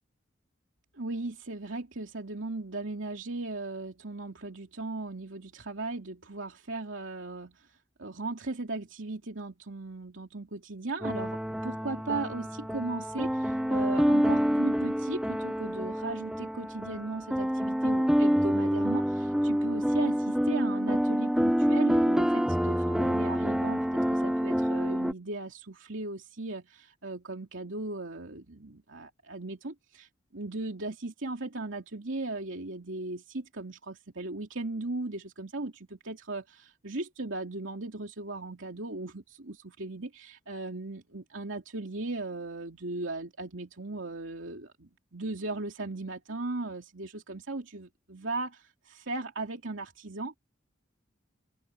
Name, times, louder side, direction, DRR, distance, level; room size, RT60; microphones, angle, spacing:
voice 1, 0.9-50.4, right 2 dB, 85° right, 2.7 m, -37 dB
sound 1, 11.0-25.1, equal, 5° right, 1.1 m, -27 dB
open air
head